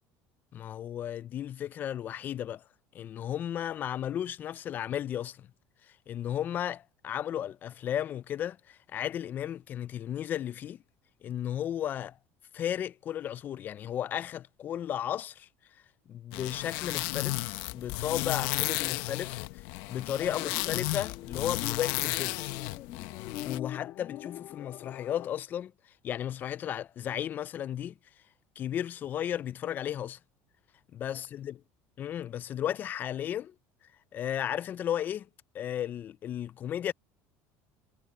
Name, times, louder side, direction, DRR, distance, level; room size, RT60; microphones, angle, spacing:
voice 1, 0.5-2.6 2.9-5.5 6.1-10.8 11.2-12.2 12.5-15.5 16.1-22.4 23.4-25.7 26.0-28.0 28.6-30.2 30.9-31.5 32.0-33.5 34.1-35.3 35.5-36.9, left 10 dB, 30° left, 0.4 m, -34 dB
sound 1, 16.3-23.6, left 20 dB, 70° left, 0.9 m, -33 dB
sound 2, 20.2-25.3, left 13 dB, 50° left, 1.9 m, -44 dB
cardioid pair, 160°, 6 cm